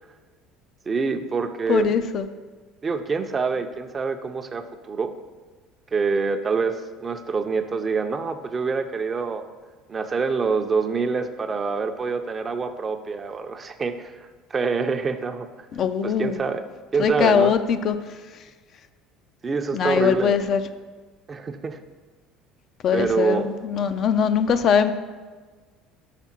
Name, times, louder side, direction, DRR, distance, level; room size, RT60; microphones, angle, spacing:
voice 1, 0.9-1.9 2.8-5.1 5.9-9.4 9.9-15.5 16.0-16.6 16.9-17.5 19.4-20.4 21.3-21.8 22.9-23.5, right 4 dB, 30° right, 7 dB, 0.5 m, -26 dB
voice 2, 1.7-2.3 15.7-16.4 17.0-18.0 19.7-20.6 22.8-24.9, left 7 dB, 50° left, 10 dB, 0.4 m, -21 dB
5.8 x 3.6 x 5.9 m, 1.4 s
supercardioid pair, 90°, 0 cm